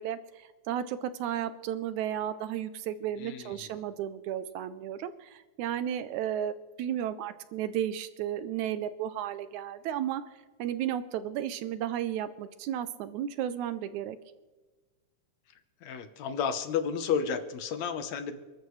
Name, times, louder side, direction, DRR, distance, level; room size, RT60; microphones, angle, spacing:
voice 1, 0.0-10.2 10.6-14.2, right 10 dB, 80° right, 12 dB, 1.7 m, -33 dB
voice 2, 3.2-3.7 15.8-18.4, left 7 dB, 65° left, 9 dB, 2.0 m, -32 dB
28.5 x 13.0 x 3.2 m, 1.3 s
omnidirectional pair, 3.9 m